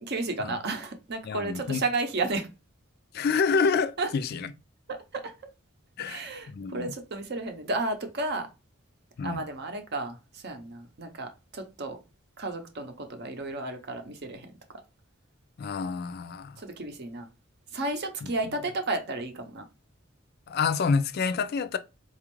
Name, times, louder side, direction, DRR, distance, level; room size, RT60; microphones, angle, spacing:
voice 1, 0.0-2.5 4.0-4.1 5.1-5.3 6.0-8.5 9.2-12.0 12.4-14.5 16.6-17.3 17.7-19.6, right 2 dB, 50° right, 0.6 m, -32 dB
voice 2, 1.2-1.8 3.1-4.5 6.0-6.9 9.2-9.4 15.6-16.6 18.2-18.3 20.5-21.8, left 5 dB, 50° left, 0.3 m, -28 dB
4.2 x 2.4 x 3.0 m
head